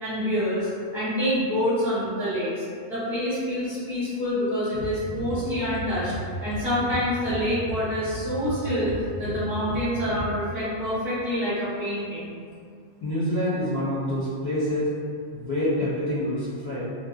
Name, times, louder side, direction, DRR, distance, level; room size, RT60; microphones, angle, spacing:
voice 1, 0.0-2.6 2.9-6.1 6.4-12.3, equal, ahead, -16 dB, 0.5 m, -27 dB
sound 1, 4.7-10.3, equal, 60° right, 0.7 m, -35 dB
voice 2, 13.0-14.9 15.3-16.8, left 1 dB, 55° left, -12 dB, 0.7 m, -26 dB
2.7 x 2.1 x 2.3 m, 2.2 s
omnidirectional pair, 1.3 m